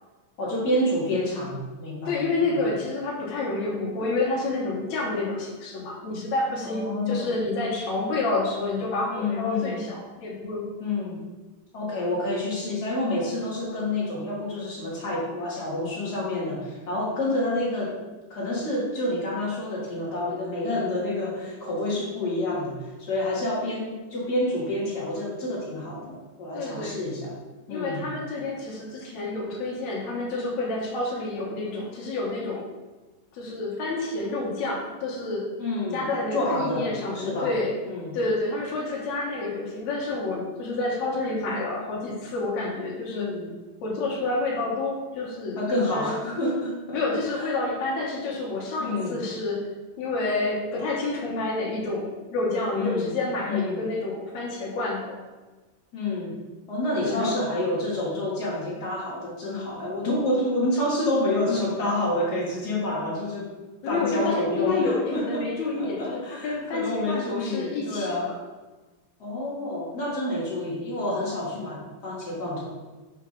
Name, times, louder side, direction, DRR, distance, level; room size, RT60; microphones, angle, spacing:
voice 1, 0.4-2.6 6.6-7.3 9.1-9.8 10.8-11.2 11.7-18.0 18.3-27.4 27.7-28.1 35.6-36.0 36.3-36.9 37.1-37.5 37.9-38.2 43.1-43.5 45.6-47.0 47.4-47.5 48.8-49.2 52.7-53.1 53.4-53.8 55.9-56.3 56.7-63.5 63.8-65.5 65.8-68.3 69.2-72.7, left 1 dB, 40° left, -5 dB, 1.7 m, -28 dB
voice 2, 2.1-10.6 26.5-27.1 27.7-32.7 33.3-35.4 35.9-37.8 38.1-43.3 43.8-46.2 46.9-49.6 50.0-55.2 57.0-57.4 63.8-68.4, left 2 dB, 65° left, -4 dB, 2.7 m, -29 dB
5.7 x 4.7 x 5.4 m, 1.2 s
omnidirectional pair, 3.7 m